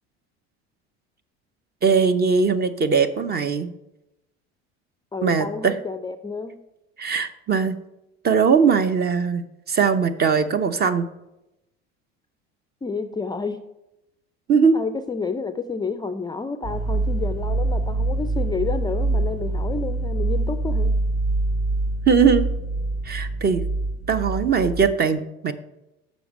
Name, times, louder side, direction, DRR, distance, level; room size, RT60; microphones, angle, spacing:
voice 1, 1.8-3.7 5.2-5.7 7.0-7.8 8.2-11.1 14.5-14.7 22.1-22.5 23.0-23.6 24.1-25.5, right 5 dB, 30° right, 11 dB, 0.7 m, -20 dB
voice 2, 5.1-6.6 12.8-13.6 14.7-20.9, left 4 dB, 15° left, 9 dB, 0.4 m, -30 dB
sound 1, 16.6-24.9, right 2 dB, 55° right, 2.4 m, -25 dB
7.0 x 5.1 x 6.0 m, 0.91 s
supercardioid pair, 90°, 31 cm